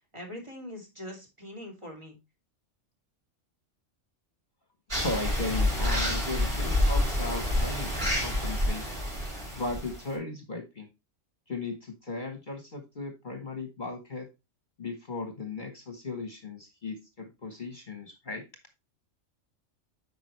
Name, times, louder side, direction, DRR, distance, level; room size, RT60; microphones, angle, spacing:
voice 1, 0.1-2.2, left 1 dB, 25° right, 1 dB, 2.5 m, -42 dB
voice 2, 4.9-7.9 8.2-8.8 9.5-10.9 11.5-14.3 14.8-18.4, left 3 dB, 40° left, 5 dB, 1.3 m, -36 dB
sound 1, 4.9-10.1, left 1 dB, 50° right, 5.0 m, -28 dB
8.9 x 5.4 x 3.1 m, 0.24 s
omnidirectional pair, 1.3 m